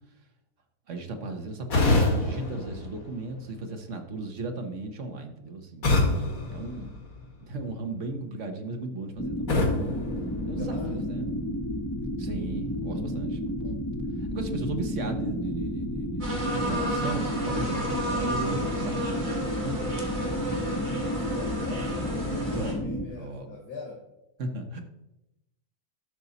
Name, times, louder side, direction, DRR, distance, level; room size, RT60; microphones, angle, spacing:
voice 1, 0.9-5.9 6.5-9.7 10.5-11.3 12.2-13.8 14.2-20.0 20.5-20.7 22.5-22.9 23.1-23.6 24.4-24.8, right 2 dB, 55° right, 5 dB, 1.4 m, -36 dB
sound 1, 1.7-3.7 5.8-7.5 9.5-11.1, left 2 dB, 65° left, 2.3 m, -27 dB
sound 2, 9.2-23.1, equal, 10° left, 0.9 m, -31 dB
voice 2, 10.6-11.0 21.2-24.0, left 3 dB, 80° left, -1 dB, 1.9 m, -41 dB
sound 3, 16.2-22.7, right 1 dB, 30° right, 1.9 m, -32 dB
12.0 x 6.3 x 4.1 m, 0.90 s
omnidirectional pair, 1.6 m